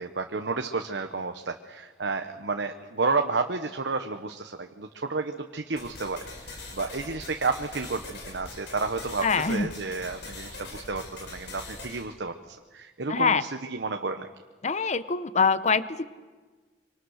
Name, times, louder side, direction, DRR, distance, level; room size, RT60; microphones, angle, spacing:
voice 1, 0.0-6.2 6.7-14.3, right 3 dB, 85° right, 5 dB, 1.1 m, -31 dB
sound 1, 5.8-12.0, left 2 dB, 75° left, 4.9 m, -42 dB
voice 2, 9.2-9.7 13.1-13.4 14.6-16.1, left 5 dB, 40° left, 14 dB, 0.8 m, -24 dB
25.5 x 25.0 x 6.5 m, 1.4 s
head